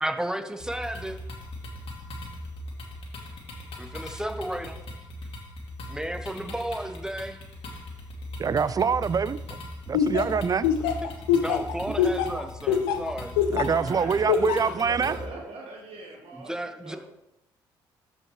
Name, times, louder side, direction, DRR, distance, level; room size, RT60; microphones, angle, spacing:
voice 1, 0.0-1.2 3.8-4.8 5.9-7.4 11.4-13.3 16.3-17.0, right 1 dB, 5° right, 7 dB, 1.1 m, -33 dB
sound 1, 0.6-15.3, left 1 dB, 55° left, 2.2 m, -39 dB
voice 2, 8.4-9.6 9.9-10.7 11.9-12.0 13.5-15.2, right 6 dB, 35° right, 18 dB, 0.4 m, -25 dB
Laughter, 9.9-13.8 14.3-14.7, left 8 dB, 80° left, 0.7 m, -23 dB
voice 3, 13.6-16.5 16.8-17.0, right 2 dB, 60° right, 0 dB, 1.4 m, -40 dB
13.5 x 5.3 x 3.2 m, 0.87 s
hypercardioid pair, 50°, 11 cm